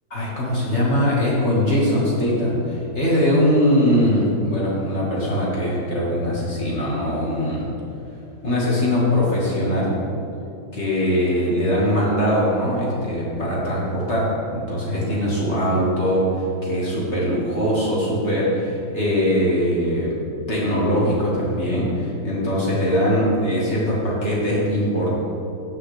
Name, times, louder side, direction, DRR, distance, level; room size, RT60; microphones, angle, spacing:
voice 1, 0.1-7.7 8.4-9.9 10.7-20.1 20.5-25.1, equal, 45° left, -6 dB, 2.0 m, -21 dB
16.0 x 5.7 x 3.3 m, 2.8 s
omnidirectional pair, 1.7 m